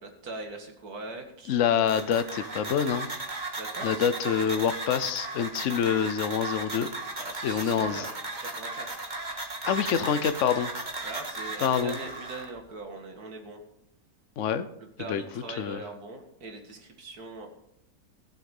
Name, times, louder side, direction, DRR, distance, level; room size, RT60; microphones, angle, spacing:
voice 1, 0.0-1.6 3.5-4.1 7.2-8.1 8.4-9.1 11.0-13.6 15.0-17.5, right 2 dB, 75° right, 4 dB, 2.4 m, -41 dB
voice 2, 1.5-3.1 3.8-6.9 7.4-8.1 9.7-10.7 11.6-12.0 14.4-14.7 15.1-15.2 15.6-15.8, left 8 dB, 60° left, 12 dB, 1.1 m, -26 dB
sound 1, 1.9-12.5, right 2 dB, 30° right, 1.8 m, -36 dB
16.0 x 7.6 x 5.4 m, 0.75 s
omnidirectional pair, 1.6 m